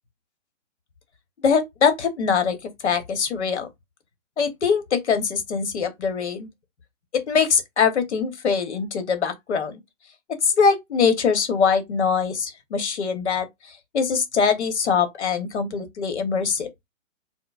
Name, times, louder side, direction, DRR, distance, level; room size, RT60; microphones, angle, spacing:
voice 1, 1.4-2.6 2.8-3.7 4.4-6.5 7.1-9.8 10.4-16.7, left 6 dB, 60° left, 1.1 m, -23 dB
4.4 x 2.1 x 2.4 m
hypercardioid pair, 175°, 39 cm